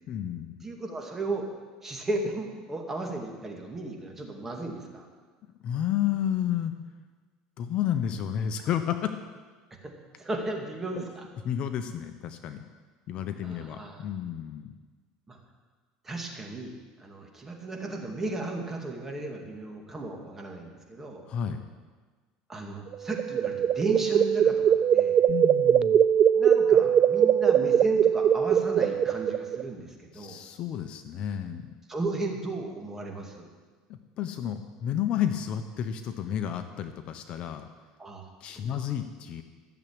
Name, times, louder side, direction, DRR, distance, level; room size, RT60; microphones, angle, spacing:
voice 1, 0.1-0.6 5.6-6.7 7.6-9.1 11.4-12.6 13.1-14.8 21.3-21.6 25.3-26.0 30.1-31.7 34.2-37.6 38.4-39.4, left 10 dB, 45° left, 8 dB, 0.9 m, -31 dB
voice 2, 0.6-1.5 1.8-5.1 9.8-9.9 10.2-11.2 13.4-14.0 15.3-15.4 16.0-21.3 22.5-25.2 26.3-30.4 31.9-33.5 38.0-38.9, right 2 dB, 15° right, 1 dB, 2.2 m, -35 dB
sound 1, 22.9-29.6, right 9 dB, 35° right, 0.3 m, -22 dB
14.5 x 7.2 x 8.7 m, 1.4 s
cardioid pair, 135°, 2 cm